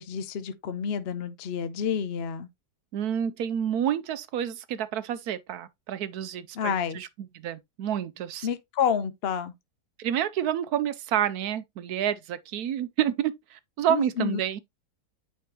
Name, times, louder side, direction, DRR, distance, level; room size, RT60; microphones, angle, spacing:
voice 1, 0.0-2.5 6.5-7.0 8.4-9.5 13.9-14.4, left 8 dB, 55° left, 0.7 m, -29 dB
voice 2, 2.9-7.1 7.4-8.5 10.0-14.6, right 10 dB, 70° right, 1.1 m, -29 dB
9.3 x 4.3 x 2.9 m
omnidirectional pair, 1.9 m